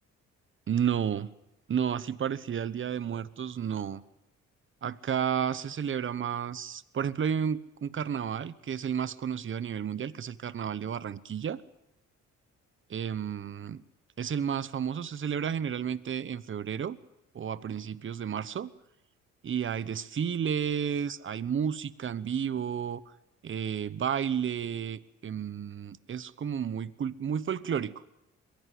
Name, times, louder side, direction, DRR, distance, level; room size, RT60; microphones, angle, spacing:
voice 1, 0.7-1.3 1.7-4.0 4.8-11.6 12.9-13.8 14.2-17.0 17.3-18.7 19.4-23.0 23.4-28.1, right 8 dB, 40° right, 16 dB, 1.0 m, -32 dB
23.0 x 17.0 x 7.8 m, 0.90 s
cardioid pair, 90°, 30 cm